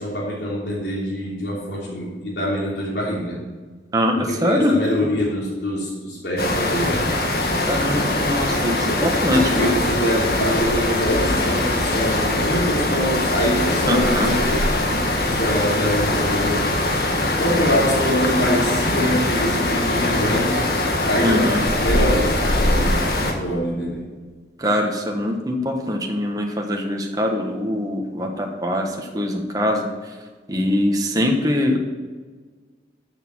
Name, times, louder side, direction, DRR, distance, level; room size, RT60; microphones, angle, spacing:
voice 1, 0.0-3.4 4.1-7.1 9.3-14.6 15.3-16.8 17.4-20.6 21.1-23.0 23.3-24.0 28.2-28.3, equal, 75° left, -5 dB, 3.1 m, -24 dB
voice 2, 3.9-4.8 7.7-9.7 13.9-14.3 21.2-21.6 24.6-29.9 30.5-31.8, left 1 dB, 20° right, 1 dB, 1.3 m, -22 dB
sound 1, 6.4-23.3, left 1 dB, 60° left, 1.6 m, -21 dB
13.0 x 6.6 x 4.6 m, 1.4 s
head